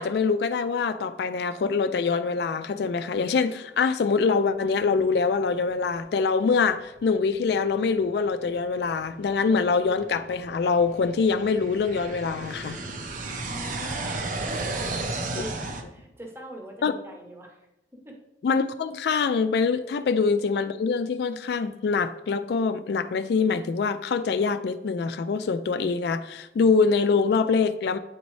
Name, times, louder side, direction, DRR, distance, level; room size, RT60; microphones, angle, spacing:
voice 1, 0.0-12.8 15.3-15.4 16.8-16.9 18.4-28.0, left 5 dB, 65° left, 0.3 m, -24 dB
sound 1, 7.0-7.1 7.7-7.8 8.4-15.8, right 2 dB, 45° right, 0.6 m, -34 dB
voice 2, 13.4-17.7 17.9-18.2, equal, 15° right, 0.8 m, -43 dB
8.8 x 4.0 x 3.1 m
head